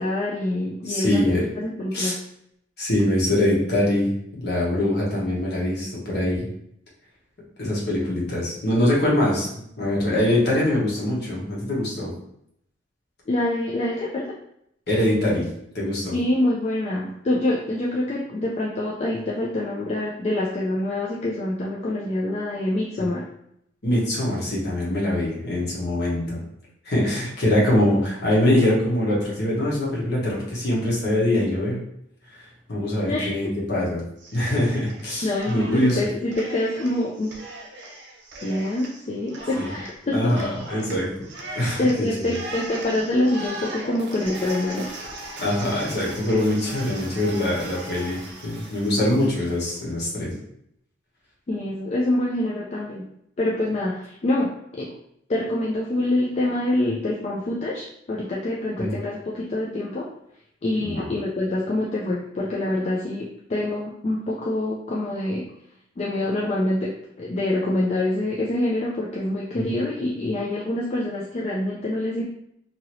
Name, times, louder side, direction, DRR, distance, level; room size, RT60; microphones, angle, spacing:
voice 1, 0.0-2.1 13.3-14.3 16.1-23.2 33.1-33.6 35.2-37.4 38.4-40.5 41.8-44.9 51.5-53.1 53.4-54.9 55.3-60.1 60.6-65.5 66.0-72.2, left 1 dB, 35° left, -3 dB, 0.3 m, -26 dB
voice 2, 0.8-1.5 1.9-2.1 2.8-6.5 7.6-9.5 9.8-12.1 14.9-15.5 15.7-16.1 23.0-23.1 23.8-26.4 26.8-31.8 32.3-34.0 34.3-36.0 39.6-39.7 40.1-41.3 41.5-41.9 42.2-42.3 45.4-50.3 58.8-58.9 60.8-61.1 69.5-69.6, left 1 dB, 55° left, -5 dB, 1.1 m, -23 dB
Cheering, 34.2-35.0 35.3-49.8, right 1 dB, 60° right, 0.6 m, -39 dB
2.8 x 2.7 x 2.9 m, 0.74 s
head